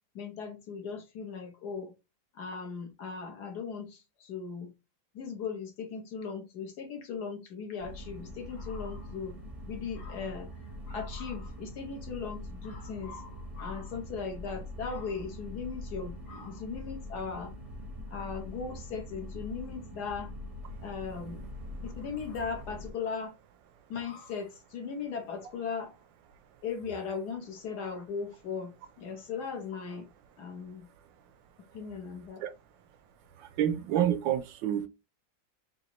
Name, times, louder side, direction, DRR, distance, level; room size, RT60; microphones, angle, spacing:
voice 1, 0.1-1.9 2.4-4.7 5.1-9.4 9.7-10.5 10.9-17.5 18.1-20.3 20.8-21.4 21.8-23.3 23.9-25.9 26.6-28.7 29.0-30.0 30.4-30.8 31.7-32.4, left 5 dB, 60° left, 1.3 m, -38 dB
sound 1, 7.8-22.9, left 1 dB, 30° right, 0.6 m, -43 dB
voice 2, 33.4-34.9, right 10 dB, 80° right, 1.3 m, -28 dB
3.9 x 3.5 x 2.9 m
omnidirectional pair, 2.1 m